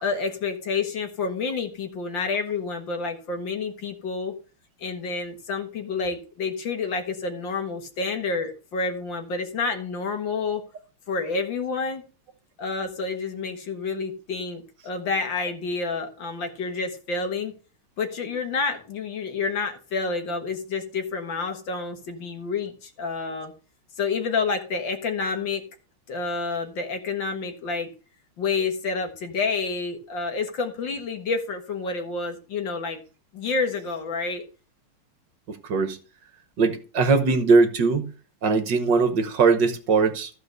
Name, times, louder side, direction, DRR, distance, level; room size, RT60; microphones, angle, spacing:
voice 1, 0.0-4.3 4.8-10.6 11.1-12.0 12.6-17.5 18.0-23.5 24.0-25.6 26.1-27.9 28.4-33.0 33.3-34.4, left 4 dB, 60° left, 2.2 m, -29 dB
voice 2, 36.6-38.0 38.4-40.3, right 4 dB, 60° right, 1.6 m, -20 dB
14.5 x 4.9 x 6.7 m
omnidirectional pair, 2.4 m